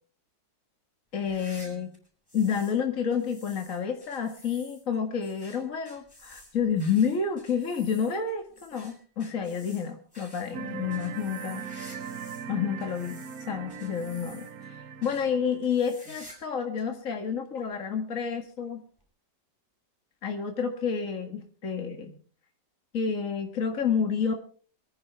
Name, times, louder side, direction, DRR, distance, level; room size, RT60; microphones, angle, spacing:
voice 1, 1.1-1.9 2.3-11.6 12.5-18.8 20.2-22.1 22.9-24.3, left 6 dB, 45° left, 3 dB, 2.1 m, -29 dB
sound 1, 1.1-2.8 3.1-12.5 12.8-14.7 15.0-15.2 15.6-16.5 16.8-16.9 17.7-17.8 19.0-19.1, left 1 dB, 10° left, 5.6 m, -52 dB
sound 2, 10.5-15.6, right 7 dB, 60° right, 1.3 m, -40 dB
23.5 x 14.5 x 3.4 m, 0.42 s
omnidirectional pair, 2.0 m